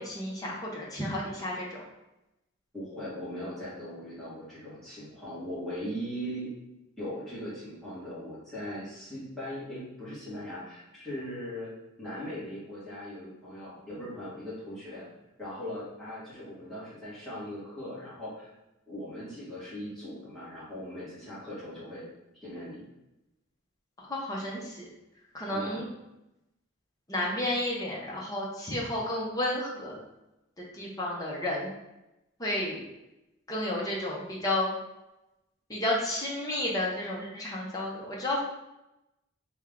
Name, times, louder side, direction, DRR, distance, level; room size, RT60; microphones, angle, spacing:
voice 1, 0.0-1.8 24.1-24.9 25.3-25.9 27.1-30.0 30.8-31.7 32.4-32.8 33.5-34.7 35.7-38.4, left 1 dB, 15° left, -4 dB, 0.7 m, -31 dB
voice 2, 2.7-6.5 7.0-11.7 12.0-15.0 15.4-18.5 18.9-22.0 22.4-22.8 25.5-25.8, equal, ahead, -11 dB, 1.3 m, -39 dB
3.4 x 2.3 x 3.5 m, 0.93 s
head